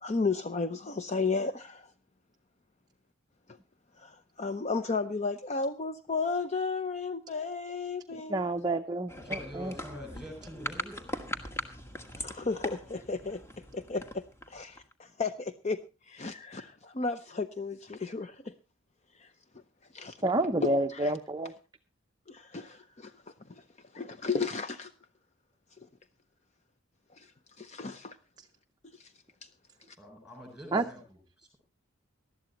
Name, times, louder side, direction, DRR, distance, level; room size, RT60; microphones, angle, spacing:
voice 1, 0.0-1.9 4.0-8.4 12.2-13.4 13.7-15.8 16.1-18.5 19.2-19.3 19.9-20.2 20.6-21.1 22.3-23.1 23.9-24.9 27.2-27.3 27.6-28.2 29.0-29.1, left 4 dB, 35° left, 0.6 m, -33 dB
voice 2, 8.3-9.7 20.2-21.5 28.4-28.5 30.7-30.8, right 2 dB, 20° right, 0.6 m, -29 dB
sound 1, 9.1-14.9, left 1 dB, 15° left, 1.4 m, -40 dB
voice 3, 9.2-11.1 30.0-31.6, equal, 5° right, 7.2 m, -45 dB
19.0 x 12.5 x 2.9 m
head